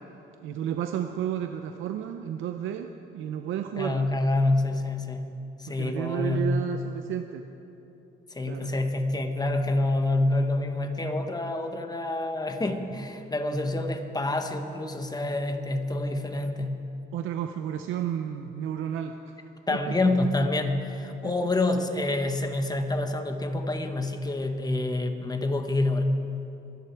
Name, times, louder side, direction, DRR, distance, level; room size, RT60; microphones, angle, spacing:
voice 1, 0.4-4.1 5.7-7.5 8.5-8.7 17.1-19.2 19.7-20.3 21.2-21.5 21.8-22.0, right 9 dB, 85° right, 6 dB, 0.6 m, -32 dB
voice 2, 3.8-5.3 5.6-6.5 8.3-16.8 19.7-26.0, left 2 dB, 20° left, 6 dB, 1.4 m, -27 dB
24.0 x 10.5 x 4.7 m, 2.9 s
cardioid pair, 90°, 20 cm